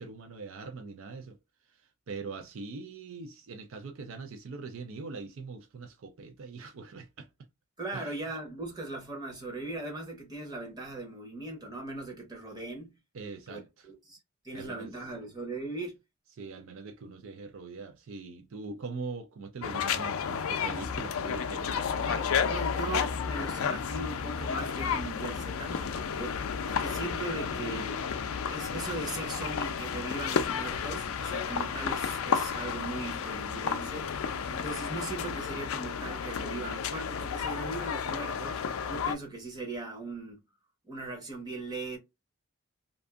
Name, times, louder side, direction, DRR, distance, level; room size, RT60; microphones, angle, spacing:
voice 1, 0.0-1.4 1.7-7.3 7.9-8.2 13.1-13.9 14.5-14.9 16.4-22.1, right 4 dB, 65° right, 0.4 m, -42 dB
voice 2, 7.8-13.0 13.5-14.2 14.4-16.0 22.0-28.0 28.5-34.1 34.5-38.6 38.9-40.4 40.9-42.0, right 2 dB, 20° right, 0.9 m, -39 dB
sound 1, 19.6-39.1, left 6 dB, 75° left, 0.4 m, -32 dB
sound 2, 29.0-35.4, left 1 dB, 10° left, 0.4 m, -52 dB
2.6 x 2.5 x 2.3 m
head